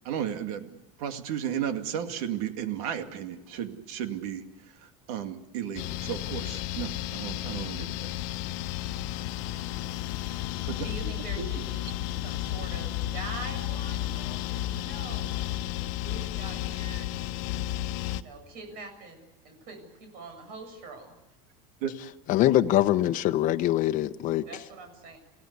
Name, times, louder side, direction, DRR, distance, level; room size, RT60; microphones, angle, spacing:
voice 1, 0.0-4.4 5.1-8.1 10.7-11.5 21.8-21.9, right 9 dB, 85° right, 2.4 m, -34 dB
sound 1, 5.8-18.2, left 13 dB, 75° left, 1.1 m, -33 dB
voice 2, 10.8-15.3 16.0-17.1 18.1-21.1 24.5-25.2, right 3 dB, 55° right, 7.1 m, -44 dB
voice 3, 22.3-24.4, left 13 dB, 45° left, 1.0 m, -23 dB
28.5 x 17.0 x 8.2 m
cardioid pair, 145°, 18 cm